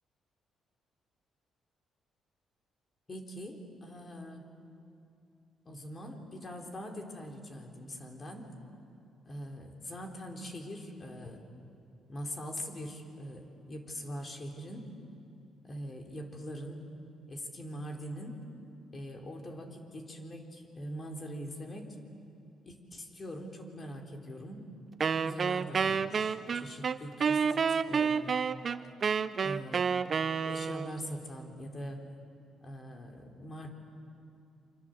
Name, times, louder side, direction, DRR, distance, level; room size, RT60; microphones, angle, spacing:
voice 1, 3.1-4.5 5.7-8.5 9.3-11.4 12.1-14.9 15.6-16.8 17.3-18.4 18.9-22.0 22.6-24.6 25.2-28.4 29.4-29.9 30.4-32.1 32.6-33.7, equal, 35° left, 2 dB, 4.1 m, -42 dB
Wind instrument woodwind instrument, 25.0-31.0, right 6 dB, 45° right, 0.8 m, -29 dB
28.5 x 25.0 x 8.0 m, 2.6 s
cardioid pair, 90°, 0 cm